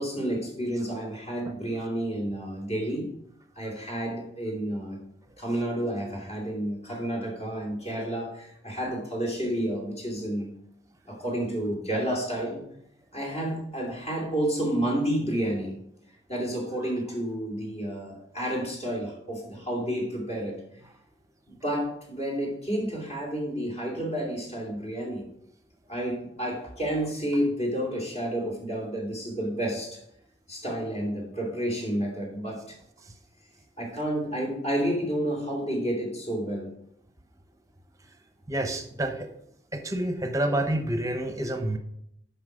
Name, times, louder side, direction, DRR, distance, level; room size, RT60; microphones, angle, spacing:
voice 1, 0.0-3.1 3.6-5.0 5.4-10.5 11.1-12.6 13.1-15.7 16.3-20.6 21.6-25.3 25.9-30.0 30.5-32.8 33.8-36.7, right 1 dB, 40° left, -2 dB, 2.7 m, -30 dB
voice 2, 38.5-39.3 39.7-41.8, right 1 dB, 20° right, 7 dB, 0.9 m, -28 dB
8.1 x 5.7 x 5.1 m, 0.74 s
head